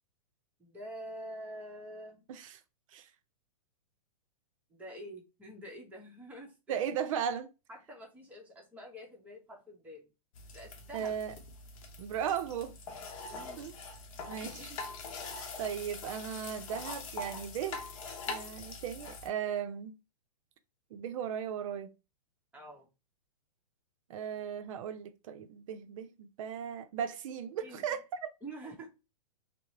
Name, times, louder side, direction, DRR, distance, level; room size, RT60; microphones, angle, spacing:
voice 1, 0.6-2.3 4.7-6.9 7.7-10.1 10.5-11.1 13.2-13.6 14.4-14.8 22.5-22.9 27.6-27.9 28.4-28.9, right 1 dB, 5° right, 0.8 m, -47 dB
voice 2, 2.3-2.6 2.9-3.1 6.7-7.5 10.9-11.3 12.0-12.7 13.6-13.7 14.3-14.7 15.6-17.9 18.3-20.0 20.9-21.9 24.1-28.3, right 8 dB, 60° right, 0.5 m, -36 dB
sound 1, 10.3-19.3, left 3 dB, 60° left, 0.7 m, -43 dB
2.8 x 2.0 x 2.7 m
hypercardioid pair, 125°, 19 cm